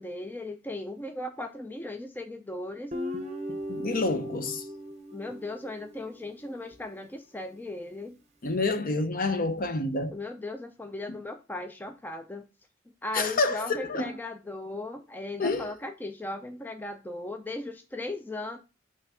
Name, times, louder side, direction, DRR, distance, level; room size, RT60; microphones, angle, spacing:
voice 1, 0.0-2.9 5.1-8.2 10.1-12.4 13.0-18.6, left 2 dB, 10° left, 0.4 m, -37 dB
Guitar, 2.9-6.2, equal, 35° right, 0.7 m, -37 dB
voice 2, 3.5-4.6 8.4-10.1 13.1-14.2 15.4-15.7, left 3 dB, 45° left, 0.7 m, -28 dB
5.7 x 3.2 x 5.5 m
head